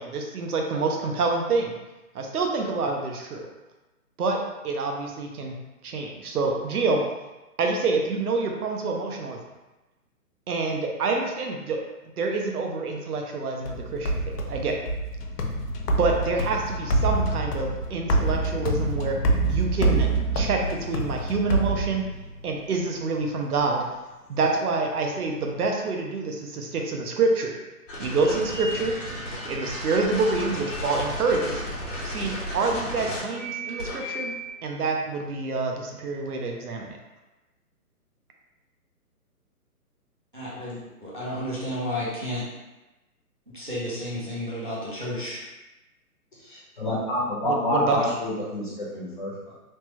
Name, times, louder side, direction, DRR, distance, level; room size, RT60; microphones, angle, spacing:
voice 1, 0.0-1.8 2.1-3.5 4.2-4.4 4.6-5.5 5.8-7.0 7.6-9.4 10.5-11.8 12.2-14.7 16.0-19.2 19.5-20.1 20.3-22.0 22.4-23.8 24.3-27.5 28.0-28.9 29.4-31.6 32.0-34.3 34.6-37.0 47.4-48.0, right 3 dB, 75° right, 1 dB, 0.7 m, -27 dB
sound 1, 13.6-22.4, right 2 dB, 90° left, 0.6 m, -26 dB
sound 2, 27.9-34.5, equal, 55° left, 1.1 m, -34 dB
voice 2, 40.3-42.4 43.5-45.4, left 1 dB, 35° right, -9 dB, 0.5 m, -32 dB
voice 3, 46.4-49.5, left 1 dB, 35° left, -7 dB, 0.8 m, -28 dB
3.2 x 2.1 x 3.0 m, 1.0 s
hypercardioid pair, 175°, 45 cm